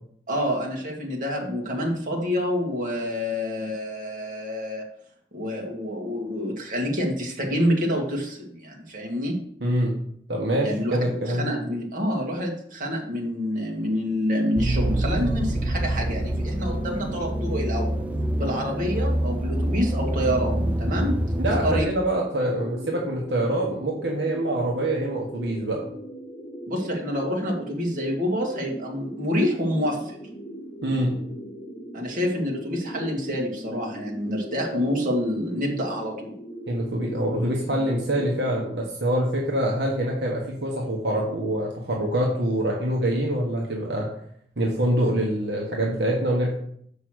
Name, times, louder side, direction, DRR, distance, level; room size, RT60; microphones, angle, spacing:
voice 1, 0.3-4.8 5.3-9.4 10.6-18.0 18.4-21.2 21.6-21.9 26.7-30.2 31.9-36.4, equal, 50° right, -1 dB, 2.0 m, -27 dB
voice 2, 9.6-10.0 10.3-11.5 21.4-25.8 30.8-31.1 36.7-44.1 44.6-46.5, right 1 dB, 70° right, -2 dB, 1.4 m, -25 dB
sound 1, 14.6-21.8, right 1 dB, 10° right, 0.5 m, -26 dB
sound 2, 22.4-38.8, right 1 dB, 35° left, 2.0 m, -39 dB
6.4 x 5.5 x 6.3 m, 0.67 s
head